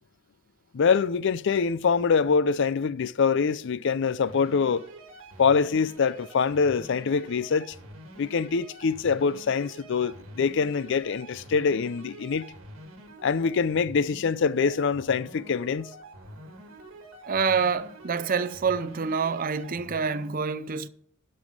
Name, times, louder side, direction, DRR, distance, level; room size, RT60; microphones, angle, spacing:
voice 1, 0.7-4.9 5.4-7.8 8.2-12.5 13.2-15.9, left 5 dB, 60° left, 0.4 m, -24 dB
sound 1, 4.2-20.3, right 1 dB, 65° right, 2.1 m, -46 dB
voice 2, 17.2-20.9, right 5 dB, 40° right, 0.5 m, -27 dB
12.0 x 5.6 x 6.3 m
head